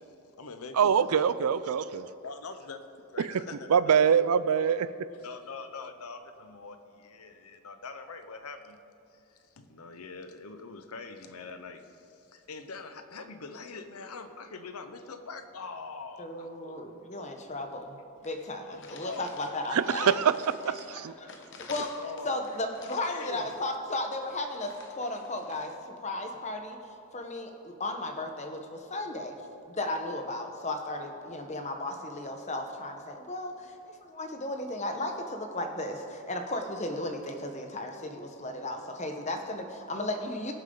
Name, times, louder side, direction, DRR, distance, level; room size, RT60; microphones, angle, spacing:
voice 1, 0.0-1.3 2.2-4.0 4.6-4.7 5.2-8.8 9.3-16.8 17.1-17.3 18.7-19.5 19.9-20.4 22.0-22.5 23.1-23.6, left 4 dB, 80° left, 8 dB, 0.9 m, -43 dB
voice 2, 0.7-2.1 3.2-3.3 3.7-4.9 19.7-20.3 20.7-21.1, right 7 dB, 85° right, 15 dB, 0.4 m, -24 dB
voice 3, 16.2-20.1 20.9-21.9 22.2-26.8 27.1-29.4 29.7-40.5, left 2 dB, 30° left, 5 dB, 1.0 m, -35 dB
sound 1, 17.8-17.9 18.2-25.7, left 4 dB, 55° left, 1.0 m, -51 dB
22.0 x 7.3 x 3.9 m, 2.7 s
head